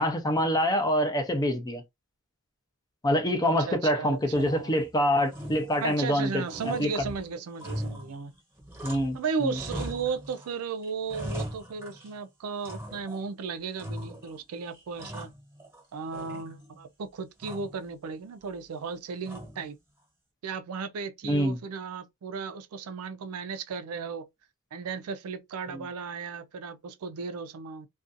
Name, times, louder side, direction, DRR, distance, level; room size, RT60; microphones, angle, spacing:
voice 1, 0.0-1.8 3.0-6.9 8.8-9.6 21.2-21.6 25.7-25.9, equal, 15° left, 0.5 m, -26 dB
voice 2, 3.7-4.8 5.8-8.3 9.1-15.3 15.9-19.8 20.4-24.3 24.7-27.9, right 5 dB, 70° right, 0.4 m, -35 dB
sound 1, 4.3-4.9 5.3-6.2 6.5-9.2 9.5-10.5 10.8-12.2 12.6-13.3 13.8-14.4 14.7-15.8 16.1-16.8 17.4-17.8 19.2-19.8, equal, 10° right, 1.0 m, -40 dB
2.5 x 2.3 x 2.5 m
head